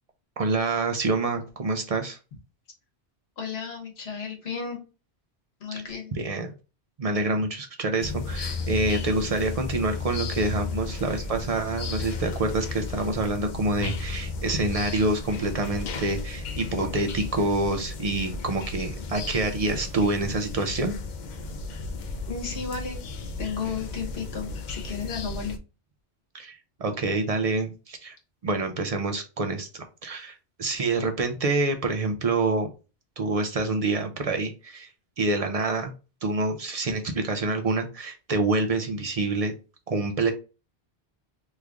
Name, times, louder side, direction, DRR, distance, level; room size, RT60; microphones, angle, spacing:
voice 1, 0.4-2.2 6.1-6.5 7.0-20.9 26.3-28.2 28.4-32.7 33.2-34.9 35.2-35.9 36.2-39.5 39.9-40.3, right 3 dB, 50° right, 5 dB, 0.4 m, -27 dB
voice 2, 3.4-4.8 5.6-6.1 22.3-23.0 23.4-25.6, left 6 dB, 75° left, 2 dB, 1.3 m, -33 dB
sound 1, 8.0-25.6, left 3 dB, 55° left, 0.6 m, -34 dB
3.1 x 2.4 x 3.3 m, 0.32 s
omnidirectional pair, 1.1 m